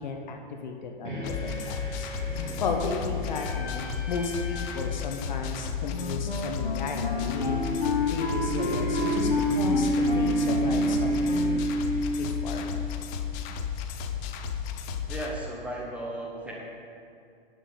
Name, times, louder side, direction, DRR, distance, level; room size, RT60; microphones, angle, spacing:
voice 1, 0.0-2.1 2.6-11.7 12.2-12.7, left 4 dB, 50° left, 3 dB, 1.0 m, -34 dB
sound 1, 1.0-13.1, right 1 dB, 55° right, 2.6 m, -31 dB
sound 2, 1.2-15.3, left 7 dB, 20° left, 0.5 m, -34 dB
Wind instrument woodwind instrument, 5.9-11.8, left 4 dB, 80° left, 1.0 m, -31 dB
voice 2, 15.1-16.5, right 1 dB, 5° right, -3 dB, 1.3 m, -35 dB
10.5 x 6.4 x 5.0 m, 2.5 s
figure-of-eight pair, 110°, 29 cm